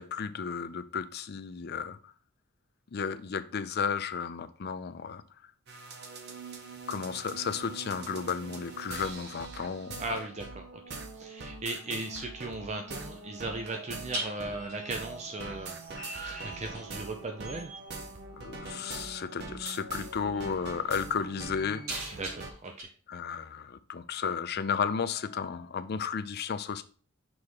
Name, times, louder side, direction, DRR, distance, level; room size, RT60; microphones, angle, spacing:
voice 1, 0.0-2.1 2.9-5.2 6.9-10.2 18.4-21.8 23.1-26.8, left 6 dB, 50° left, 0.5 m, -33 dB
sound 1, 5.7-22.5, right 3 dB, 50° right, 0.9 m, -43 dB
voice 2, 10.0-17.7 22.1-22.9, right 2 dB, 30° right, 0.6 m, -38 dB
sound 2, 14.1-17.2 17.4-17.9 19.3-19.5 20.0-22.8, right 1 dB, 75° right, 3.6 m, -42 dB
6.2 x 3.6 x 4.7 m
head